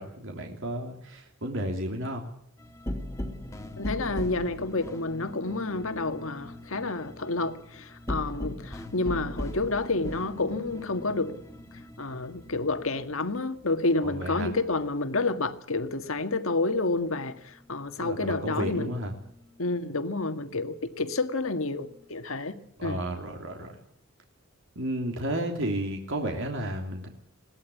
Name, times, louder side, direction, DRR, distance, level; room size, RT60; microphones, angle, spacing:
voice 1, 0.0-2.2 14.0-14.5 18.0-19.1 22.8-23.7 24.7-27.1, right 1 dB, 65° right, 3.1 m, -32 dB
sound 1, 2.6-15.6 15.9-17.8 18.1-19.8 20.2-22.0, left 1 dB, 15° left, 2.2 m, -41 dB
voice 2, 3.8-11.3 12.0-18.9 19.6-22.6 22.8-23.0, left 3 dB, 70° left, 1.8 m, -29 dB
22.0 x 17.5 x 8.4 m
head